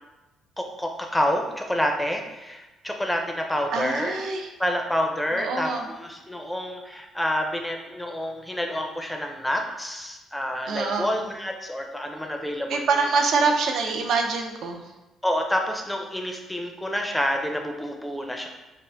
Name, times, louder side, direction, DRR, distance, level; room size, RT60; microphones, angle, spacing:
voice 1, 0.6-4.2 4.6-12.9 15.2-18.5, equal, 5° left, 3 dB, 0.4 m, -28 dB
voice 2, 3.7-4.5 5.3-5.9 10.7-11.1 12.7-14.8, right 4 dB, 70° right, 3 dB, 0.5 m, -25 dB
3.6 x 2.4 x 3.3 m, 1.1 s
cardioid pair, 115°, 0 cm